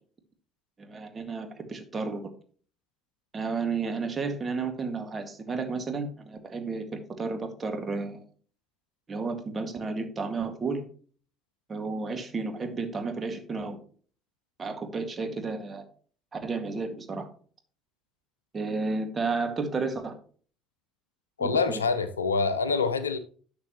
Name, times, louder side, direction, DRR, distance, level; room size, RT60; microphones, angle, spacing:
voice 1, 0.8-2.3 3.3-8.2 9.1-10.8 11.7-13.8 14.6-15.8 16.3-17.3 18.5-20.1 21.4-21.8, right 4 dB, 30° right, 2.0 m, -32 dB
voice 2, 21.4-23.2, left 4 dB, 85° left, 0.6 m, -26 dB
11.5 x 6.7 x 3.0 m
figure-of-eight pair, 55°, 0 cm